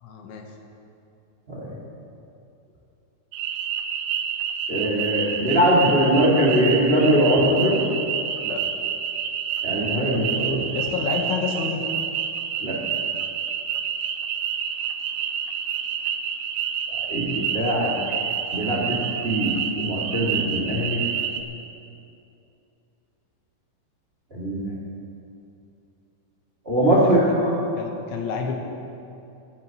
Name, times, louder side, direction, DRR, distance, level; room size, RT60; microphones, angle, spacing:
voice 1, 0.0-0.5 8.4-8.6 10.8-11.8 27.0-27.1 27.8-28.6, left 6 dB, 75° left, 2 dB, 3.5 m, -29 dB
sound 1, 3.3-21.4, right 8 dB, 90° right, 2.3 m, -28 dB
voice 2, 4.7-7.8 9.6-10.7 12.6-12.8 17.1-17.9 18.5-19.5 19.8-21.0 24.3-24.6 26.6-27.5, equal, 55° right, -5 dB, 0.6 m, -21 dB
23.0 x 12.5 x 3.1 m, 2.7 s
omnidirectional pair, 5.6 m